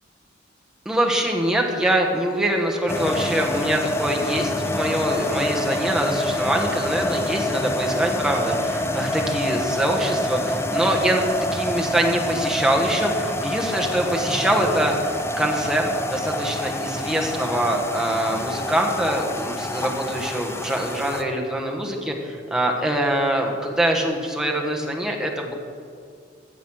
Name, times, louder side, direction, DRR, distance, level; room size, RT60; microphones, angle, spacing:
voice 1, 0.8-11.3 11.5-25.5, right 1 dB, 5° right, 0 dB, 1.2 m, -24 dB
sound 1, 2.9-21.2, left 1 dB, 15° left, 0.6 m, -27 dB
15.0 x 5.1 x 6.2 m, 2.4 s
head